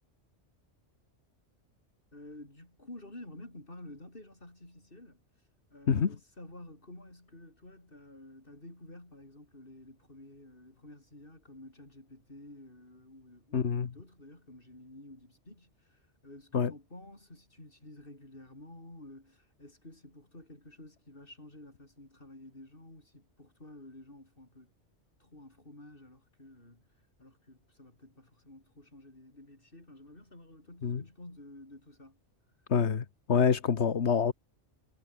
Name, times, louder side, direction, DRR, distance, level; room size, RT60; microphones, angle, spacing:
voice 1, 2.1-5.2 5.7-24.7 25.2-26.9 27.2-32.2, left 1 dB, 50° left, 5.9 m, -51 dB
voice 2, 13.5-13.9 16.5-16.7 30.8-31.0 32.7-34.3, left 6 dB, 70° left, 1.6 m, -26 dB
omnidirectional pair, 1.2 m